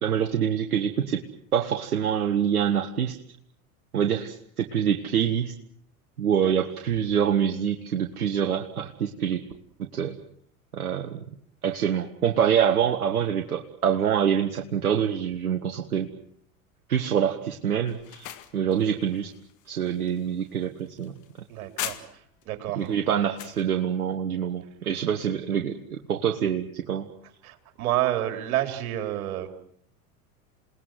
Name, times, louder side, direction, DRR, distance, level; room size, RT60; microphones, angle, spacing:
voice 1, 0.0-1.2 1.5-3.2 3.9-5.5 6.2-9.4 9.8-10.2 10.7-11.2 11.6-16.1 16.9-19.3 19.7-21.1 22.8-27.1, right 8 dB, 85° right, 5 dB, 1.7 m, -25 dB
sound 1, 17.9-22.4 22.8-23.6, left 12 dB, 40° left, 2.1 m, -40 dB
voice 2, 21.5-22.9 27.4-29.5, right 13 dB, 70° right, 7 dB, 4.2 m, -29 dB
28.0 x 19.5 x 7.7 m, 0.68 s
hypercardioid pair, 95°, 44 cm